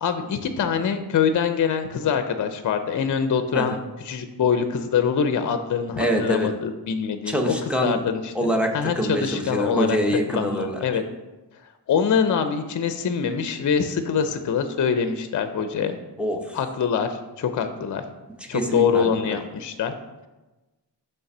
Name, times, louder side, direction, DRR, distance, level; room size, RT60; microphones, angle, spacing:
voice 1, 0.0-3.8 4.0-11.0 11.9-16.0 16.5-18.0 18.5-19.9, left 7 dB, 50° left, 8 dB, 0.5 m, -24 dB
voice 2, 6.0-6.5 7.3-8.0 8.3-10.8 16.2-16.6 18.5-19.4, right 1 dB, 5° right, 1 dB, 0.7 m, -25 dB
6.8 x 3.3 x 5.9 m, 1.1 s
wide cardioid pair, 125°, 41 cm